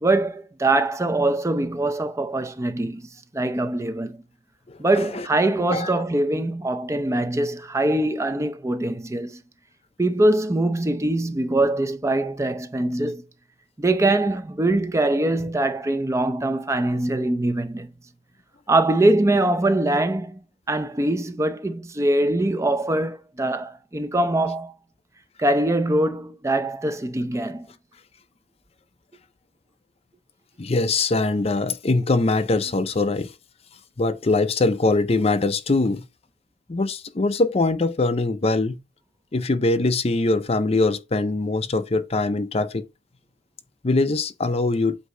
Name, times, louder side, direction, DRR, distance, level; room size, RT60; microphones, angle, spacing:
voice 1, 0.0-3.0 3.3-4.2 4.8-9.4 10.0-13.2 13.8-17.9 18.7-20.4 20.7-24.7 25.4-27.7, right 2 dB, 15° right, 0.5 m, -23 dB
voice 2, 4.7-5.3 5.7-6.0 30.6-33.3 34.0-36.1 36.7-38.8 39.3-42.8 43.8-45.0, left 3 dB, 35° left, 0.5 m, -22 dB
8.1 x 2.8 x 4.9 m
head